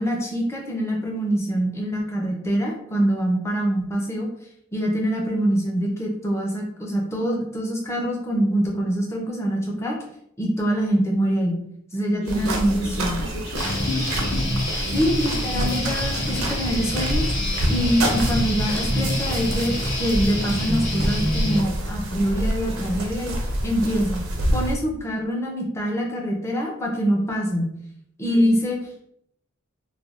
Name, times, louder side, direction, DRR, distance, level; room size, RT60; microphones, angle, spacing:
voice 1, 0.0-4.3 4.7-10.0 10.4-11.6 11.9-13.2 14.9-17.3 17.7-23.3 23.6-24.2 24.5-27.7 28.2-28.8, equal, 15° left, -1 dB, 0.5 m, -24 dB
voice 2, 12.1-14.5 28.2-28.5, left 2 dB, 60° left, 2 dB, 0.5 m, -34 dB
sound 1, 12.3-24.7, right 1 dB, 85° right, 0.6 m, -27 dB
Guitar, 13.5-21.6, left 1 dB, 45° left, 1.4 m, -27 dB
3.2 x 2.2 x 2.4 m, 0.73 s
head